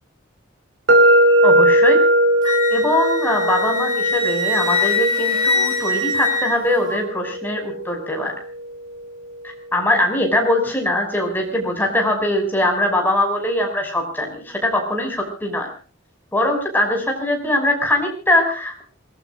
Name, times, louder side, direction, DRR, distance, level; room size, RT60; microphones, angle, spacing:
sound 1, 0.9-8.7, right 1 dB, 65° right, 3.9 m, -19 dB
voice 1, 1.4-2.0 2.4-8.3 9.7-15.7 16.3-18.8, left 1 dB, 10° left, 1 dB, 6.3 m, -21 dB
Wind instrument woodwind instrument, 2.4-7.0, left 3 dB, 20° right, 3.0 m, -23 dB
28.0 x 19.5 x 2.6 m, 0.39 s
head